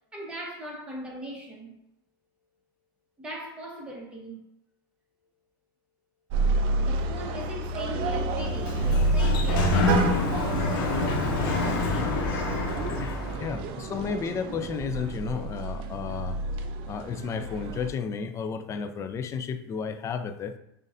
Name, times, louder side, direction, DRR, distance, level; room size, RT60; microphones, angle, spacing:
voice 1, 0.1-1.8 3.2-4.4 6.8-12.3 13.3-13.6, right 1 dB, 10° right, 1.4 m, -40 dB
sound 1, 6.3-17.9, right 2 dB, 45° right, 0.4 m, -29 dB
Sliding door, 8.4-13.5, left 2 dB, 75° left, 1.0 m, -27 dB
voice 2, 12.9-16.4 16.9-20.6, left 6 dB, 25° left, 0.4 m, -33 dB
6.3 x 2.5 x 2.6 m
supercardioid pair, 120°, 12 cm